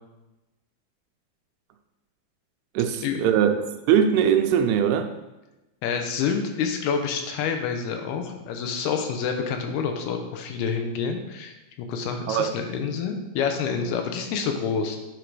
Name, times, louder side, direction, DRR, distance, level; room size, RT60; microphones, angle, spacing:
voice 1, 2.8-5.1 12.3-12.5, right 8 dB, 85° right, 6 dB, 2.6 m, -21 dB
voice 2, 5.8-15.0, left 6 dB, 80° left, 5 dB, 2.8 m, -28 dB
9.0 x 5.0 x 4.7 m, 1.0 s
omnidirectional pair, 4.6 m